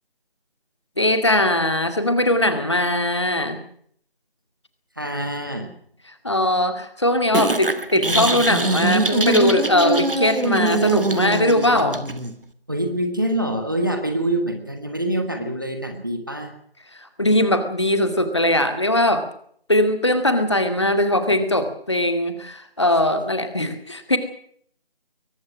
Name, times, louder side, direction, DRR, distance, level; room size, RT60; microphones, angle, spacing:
voice 1, 1.0-3.6 6.2-12.0 16.9-19.3 19.7-24.2, left 1 dB, 30° left, 8 dB, 2.2 m, -20 dB
voice 2, 5.0-5.7 12.7-16.5, right 1 dB, 20° right, 6 dB, 1.6 m, -25 dB
sound 1, 7.3-12.3, right 2 dB, 60° right, 2.6 m, -23 dB
22.5 x 20.0 x 6.2 m, 0.63 s
figure-of-eight pair, 175°, 30 cm